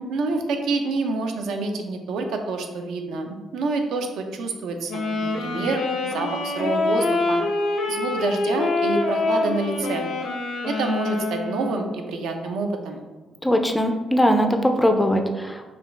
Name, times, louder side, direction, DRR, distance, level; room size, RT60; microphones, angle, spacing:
voice 1, 0.1-7.4 7.9-10.1 10.7-13.0, right 3 dB, 85° right, 5 dB, 0.5 m, -27 dB
Wind instrument woodwind instrument, 4.9-12.1, left 3 dB, 70° left, 0.5 m, -25 dB
voice 2, 13.4-15.7, equal, 5° left, 5 dB, 0.3 m, -20 dB
4.9 x 2.3 x 3.2 m, 1.2 s
cardioid pair, 140°, 0 cm